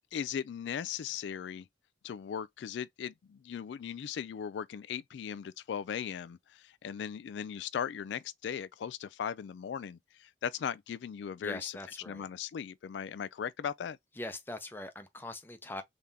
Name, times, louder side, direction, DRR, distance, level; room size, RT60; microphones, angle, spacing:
voice 1, 0.1-1.7 2.0-11.8 12.1-14.0, left 8 dB, 80° left, 0.3 m, -38 dB
voice 2, 11.4-12.3 14.2-15.8, left 1 dB, 10° left, 0.6 m, -42 dB
3.7 x 3.3 x 2.7 m
head